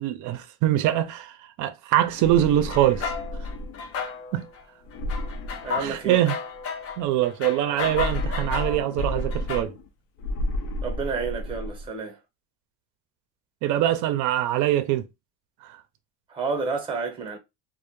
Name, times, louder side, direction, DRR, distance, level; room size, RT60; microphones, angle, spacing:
voice 1, 0.0-3.1 4.3-4.5 5.8-6.4 7.0-9.7 13.6-15.1, right 13 dB, 55° right, 0.5 m, -23 dB
sound 1, 2.1-4.0 4.9-6.3 7.7-9.9 10.2-11.9, left 1 dB, 80° left, 0.6 m, -32 dB
sound 2, 2.7-4.6 4.9-9.6, left 6 dB, 45° left, 0.5 m, -34 dB
voice 2, 5.6-6.2 10.8-12.2 16.3-17.4, right 4 dB, 15° right, 0.7 m, -30 dB
2.1 x 2.1 x 3.0 m
cardioid pair, 140°, 35 cm